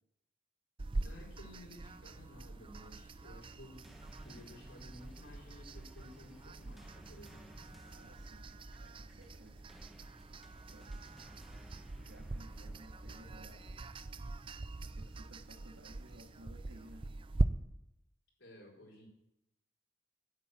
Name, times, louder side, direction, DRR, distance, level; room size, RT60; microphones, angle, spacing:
sound 1, 0.8-17.4, right 2 dB, 25° right, 0.4 m, -42 dB
voice 1, 1.0-7.5 18.4-19.1, left 1 dB, 75° left, -3 dB, 3.8 m, -55 dB
sound 2, 3.6-13.8, equal, ahead, 1.1 m, -57 dB
voice 2, 7.9-8.5 8.8-9.6 10.7-10.9 12.0-13.7 14.8-17.1, right 1 dB, 80° right, 1 dB, 2.2 m, -57 dB
9.7 x 8.3 x 7.8 m, 0.85 s
head